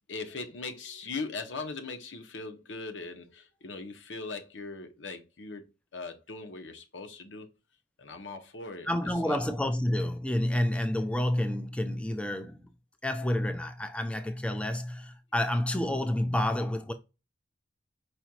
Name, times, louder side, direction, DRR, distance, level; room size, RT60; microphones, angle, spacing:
voice 1, 0.1-7.5 8.0-9.4, left 3 dB, 80° left, 1.0 m, -40 dB
voice 2, 8.9-12.6 13.0-16.9, left 1 dB, 5° left, 0.5 m, -29 dB
5.0 x 4.4 x 2.4 m
head